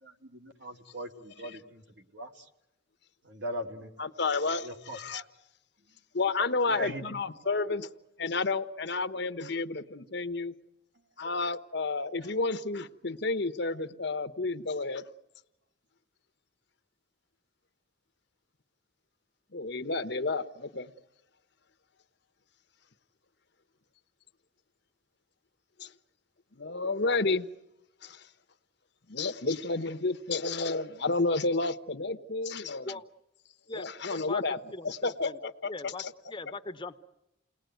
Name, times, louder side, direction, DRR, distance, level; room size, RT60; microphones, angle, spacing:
voice 1, 0.0-2.5 3.2-3.9 4.6-5.3 6.7-7.2 7.4-7.6, equal, 60° right, 4 dB, 2.5 m, -40 dB
voice 2, 4.0-5.2 6.1-7.9 8.2-10.5 11.2-15.0 19.5-20.9 25.8-25.9 26.5-27.5 28.0-28.3 29.1-32.9 33.7-34.6 34.8-36.1, left 3 dB, 55° left, 11 dB, 1.1 m, -31 dB
voice 3, 33.7-35.4 35.6-37.0, left 3 dB, 25° left, 9 dB, 1.0 m, -41 dB
29.5 x 19.5 x 9.3 m, 0.92 s
head